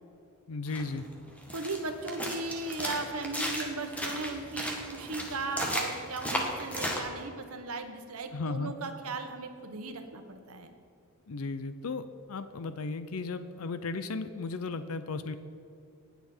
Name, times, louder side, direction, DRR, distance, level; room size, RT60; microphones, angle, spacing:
voice 1, 0.5-1.1 8.3-8.7 11.3-15.4, left 3 dB, 75° left, 11 dB, 0.6 m, -35 dB
sound 1, 0.7-7.0, equal, 5° left, 1.5 m, -35 dB
voice 2, 1.5-10.7, right 3 dB, 80° right, 6 dB, 1.2 m, -37 dB
19.0 x 7.0 x 4.4 m, 2.6 s
head